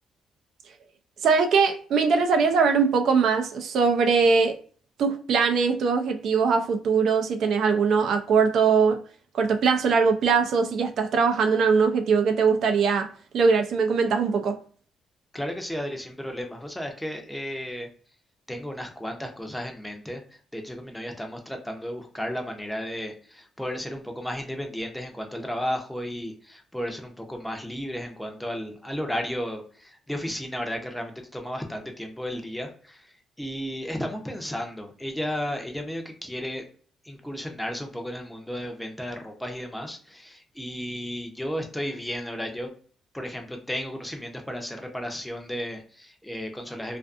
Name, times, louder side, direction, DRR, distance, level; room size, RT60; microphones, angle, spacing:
voice 1, 1.2-4.6 5.0-9.0 9.3-13.1 13.3-14.6, right 5 dB, 70° right, 0.4 m, -21 dB
voice 2, 15.3-17.9 18.5-33.1 33.4-36.6 37.0-42.7 43.1-47.0, equal, 5° left, 0.6 m, -34 dB
2.5 x 2.4 x 2.4 m
cardioid pair, 90°, 0 cm